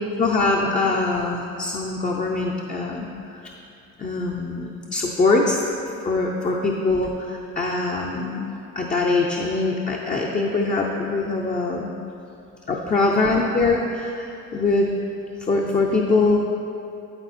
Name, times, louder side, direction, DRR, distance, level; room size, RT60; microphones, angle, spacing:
voice 1, 0.2-3.1 3.3-3.4 4.0-5.6 6.0-8.5 8.8-11.9 12.7-14.3 14.5-14.9 15.4-16.4, left 3 dB, 25° left, -1 dB, 0.6 m, -22 dB
11.0 x 4.1 x 4.3 m, 2.7 s
cardioid pair, 100°, 29 cm